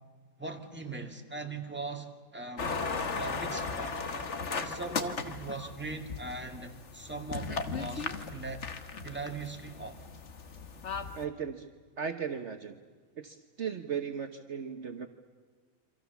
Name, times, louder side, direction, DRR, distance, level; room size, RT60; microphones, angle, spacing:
voice 1, 0.4-2.8 3.1-4.1 4.5-8.7 9.0-10.1, right 3 dB, 5° right, 2.2 m, -40 dB
sound 1, 2.6-11.2, left 4 dB, 55° left, 1.6 m, -37 dB
voice 2, 11.1-11.7 12.0-12.8 13.1-15.1, right 7 dB, 55° right, 1.3 m, -36 dB
28.5 x 25.5 x 7.1 m
omnidirectional pair, 1.5 m